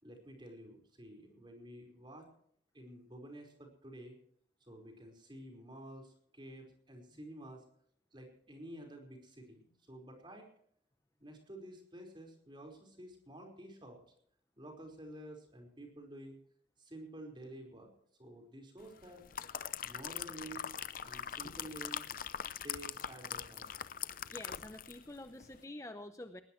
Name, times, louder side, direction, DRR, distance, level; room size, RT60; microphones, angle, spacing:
voice 1, 0.0-2.3 2.7-4.1 4.6-7.6 8.1-10.5 11.2-14.0 14.6-16.4 16.8-17.9 18.2-19.2 19.8-22.1 22.6-23.8, right 1 dB, 25° right, 2 dB, 4.8 m, -51 dB
sound 1, 19.0-25.1 25.4-25.6, left 8 dB, 50° left, 0.7 m, -42 dB
voice 2, 24.3-26.4, left 1 dB, 15° left, 8 dB, 0.8 m, -47 dB
19.5 x 19.5 x 3.2 m, 0.65 s
head